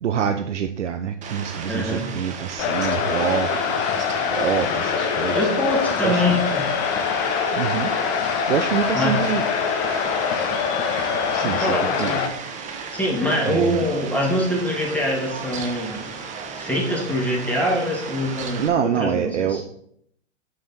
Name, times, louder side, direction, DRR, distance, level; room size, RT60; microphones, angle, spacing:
voice 1, 0.0-3.9 4.3-5.5 6.0-6.4 7.5-8.0 8.5-9.5 11.3-12.2 13.4-13.9 18.6-19.6, right 8 dB, 75° right, 6 dB, 0.6 m, -26 dB
Fowl, 1.2-18.7, right 5 dB, 20° right, 0.9 m, -35 dB
voice 2, 1.7-2.1 5.3-6.6 8.9-9.2 11.4-12.3 12.9-16.0 16.6-19.6, left 1 dB, 5° left, -3 dB, 2.1 m, -24 dB
sound 1, 2.6-12.3, left 6 dB, 30° left, 0.8 m, -24 dB
6.2 x 6.0 x 4.2 m, 0.69 s
figure-of-eight pair, 105°, 36 cm